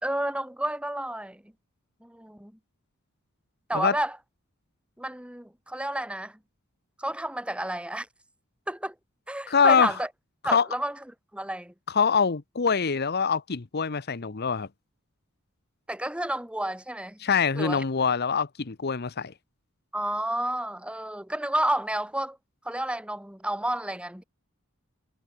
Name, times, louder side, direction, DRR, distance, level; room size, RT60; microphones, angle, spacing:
voice 1, 0.0-1.4 2.0-2.5 3.7-4.2 5.0-6.4 7.0-8.1 8.7-8.9 9.3-10.1 10.4-11.0 11.3-11.7 15.9-17.2 17.5-17.8 19.9-22.4 22.6-24.2, right 1 dB, 5° right, 1.8 m, -30 dB
voice 2, 9.5-9.9 10.5-10.7 11.9-14.7 17.2-19.3, left 6 dB, 50° left, 0.8 m, -24 dB
head